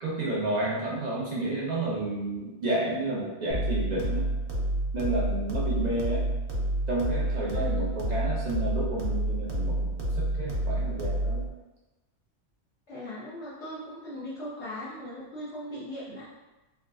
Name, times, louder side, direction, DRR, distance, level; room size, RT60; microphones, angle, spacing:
voice 1, 0.0-4.3 4.9-6.2 6.9-11.4, right 2 dB, 65° right, -6 dB, 0.4 m, -31 dB
sound 1, 3.5-11.5, right 1 dB, 85° right, 1.0 m, -29 dB
voice 2, 7.5-7.9 12.9-16.3, left 1 dB, 60° left, -10 dB, 1.0 m, -38 dB
3.5 x 2.2 x 2.4 m, 1.1 s
omnidirectional pair, 1.3 m